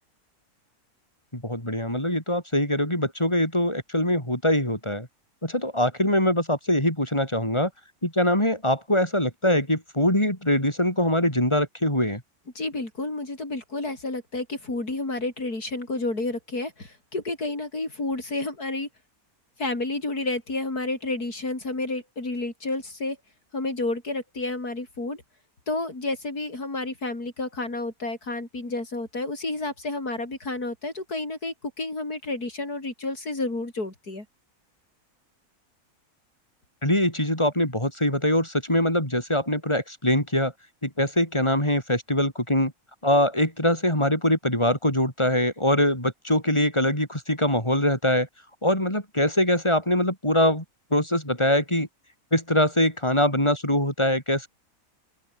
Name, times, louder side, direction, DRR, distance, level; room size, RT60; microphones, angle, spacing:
voice 1, 1.3-5.1 5.4-7.7 8.0-12.2 36.8-40.5 40.8-42.7 43.0-48.3 48.6-50.6 50.9-51.9 52.3-54.5, left 1 dB, 20° left, 7.3 m, -23 dB
voice 2, 12.5-18.9 19.6-23.2 23.5-25.2 25.7-34.2, left 2 dB, 85° left, 6.5 m, -30 dB
open air
omnidirectional pair, 1.6 m